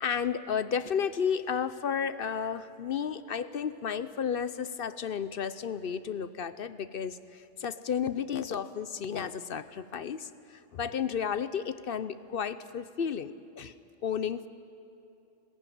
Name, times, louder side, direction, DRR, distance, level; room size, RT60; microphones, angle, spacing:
voice 1, 0.0-13.7 14.0-14.5, left 7 dB, 55° left, 14 dB, 0.8 m, -32 dB
20.0 x 20.0 x 9.3 m, 2.7 s
omnidirectional pair, 1.3 m